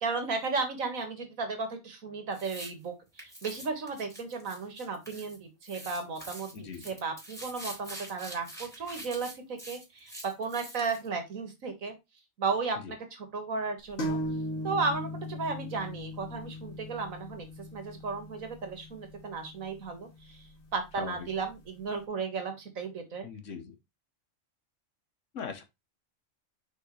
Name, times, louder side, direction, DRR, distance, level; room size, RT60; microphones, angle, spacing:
voice 1, 0.0-6.5 6.8-12.0 12.4-14.2 14.6-17.5 17.7-20.4 20.7-23.3, right 4 dB, 90° right, 2.1 m, -34 dB
sound 1, 2.3-2.7 3.2-5.4 5.6-11.1, right 1 dB, ahead, 3.9 m, -45 dB
voice 2, 6.5-6.9 12.8-12.9 21.0-21.3 23.2-23.7 25.3-25.6, left 6 dB, 70° left, 1.4 m, -40 dB
sound 2, 14.0-21.5, equal, 90° left, 2.3 m, -39 dB
6.6 x 5.1 x 3.2 m
omnidirectional pair, 1.4 m